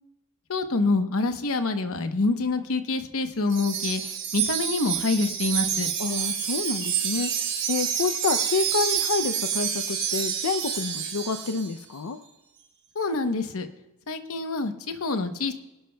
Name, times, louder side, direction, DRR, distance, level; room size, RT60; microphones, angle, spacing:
voice 1, 0.5-5.9 12.9-13.7 14.1-15.5, left 3 dB, 65° left, 8 dB, 0.9 m, -26 dB
Wind chime, 3.5-11.7, right 8 dB, 60° right, 4.2 m, -28 dB
voice 2, 6.0-12.2, left 4 dB, 90° left, 9 dB, 0.6 m, -28 dB
21.5 x 11.0 x 2.2 m, 1.0 s
head